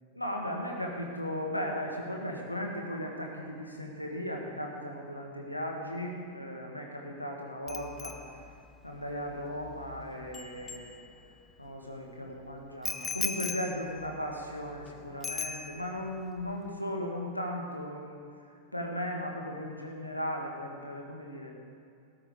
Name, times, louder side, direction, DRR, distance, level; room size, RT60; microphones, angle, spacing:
voice 1, 0.0-8.4 8.8-11.0 11.6-18.2 18.5-21.5, equal, 85° left, 0 dB, 1.7 m, -37 dB
Bicycle bell, 7.7-11.5 12.8-14.9 15.2-16.1 16.4-16.7, left 6 dB, 20° left, 0.6 m, -39 dB
15.0 x 13.0 x 3.8 m, 2.4 s
figure-of-eight pair, 90°, 0 cm